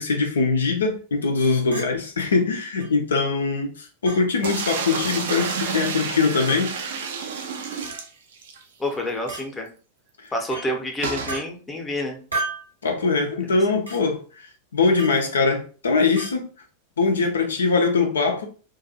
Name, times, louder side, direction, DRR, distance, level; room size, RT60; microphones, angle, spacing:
voice 1, 0.0-6.8 10.2-10.3 12.8-14.5 14.7-16.5 17.0-18.5, left 4 dB, 70° left, 0.4 m, -22 dB
Chink clink, 1.7-1.9 2.8-2.9 4.0-4.2 5.4-5.5 6.5-6.6 7.8-8.0 9.3-9.4 10.5-10.7 11.3-11.4 12.3-12.7 13.9-14.0 15.0-15.2 16.2-16.3, right 3 dB, 85° right, 1.1 m, -32 dB
sound 1, 4.4-8.6 8.9-9.0 9.3-9.4 11.0-11.4, right 5 dB, 60° right, 0.4 m, -29 dB
voice 2, 8.8-9.7 10.3-12.2 13.4-13.6, left 1 dB, 15° left, 0.6 m, -28 dB
2.5 x 2.3 x 2.6 m
figure-of-eight pair, 90°, 0 cm